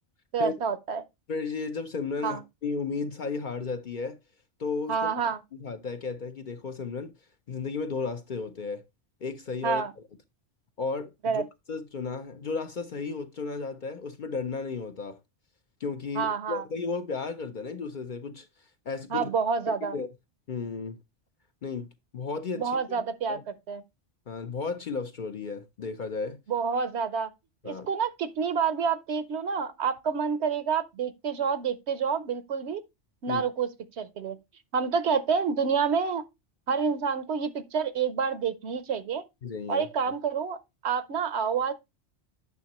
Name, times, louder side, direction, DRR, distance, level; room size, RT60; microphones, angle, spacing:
voice 1, 0.3-1.0 2.2-2.4 4.9-5.4 9.6-9.9 11.2-11.4 16.1-16.6 19.1-20.0 22.6-23.4 23.7-23.8 26.5-27.3 27.6-32.8 33.2-33.7 34.0-34.4 34.7-36.2 36.7-39.2 39.7-40.6 40.8-41.7, right 6 dB, 70° right, 1.0 m, -28 dB
voice 2, 1.3-4.2 4.6-5.1 5.6-7.1 7.5-8.8 9.2-9.8 10.8-11.4 11.7-15.2 15.8-18.5 18.9-19.3 19.9-20.1 20.5-21.0 21.6-23.0 23.3-23.4 24.3-26.4 27.6-27.9 33.3-33.4 39.4-39.9, left 4 dB, 50° left, 0.7 m, -34 dB
9.3 x 6.0 x 2.9 m
omnidirectional pair, 1.2 m